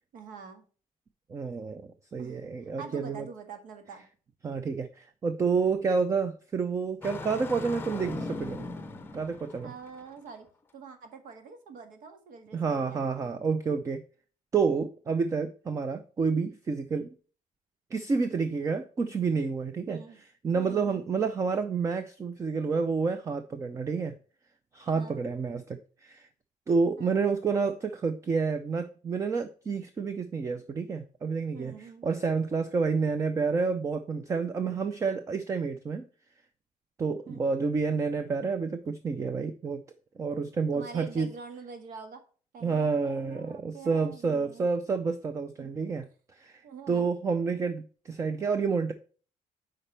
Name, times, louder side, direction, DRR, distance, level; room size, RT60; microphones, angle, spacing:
voice 1, 0.1-0.6 2.2-4.0 9.6-10.5 10.7-13.3 19.9-20.2 20.5-21.1 24.8-25.3 27.0-27.2 31.5-32.1 37.3-37.5 40.7-42.2 42.5-44.7 45.6-45.7 46.6-47.1, right 5 dB, 75° right, 7 dB, 1.7 m, -45 dB
voice 2, 1.3-1.8 2.1-3.3 4.4-8.7 9.1-9.7 12.5-14.0 14.5-17.1 17.9-20.0 20.4-24.1 24.7-26.3 26.7-36.1 37.0-39.8 40.2-41.3 42.6-46.1 46.4-46.6 46.9-48.9, right 5 dB, 20° right, 10 dB, 0.5 m, -29 dB
Engine starting, 7.0-10.0, left 2 dB, 15° left, 0.7 m, -38 dB
8.6 x 5.1 x 3.3 m, 0.39 s
cardioid pair, 175°, 14 cm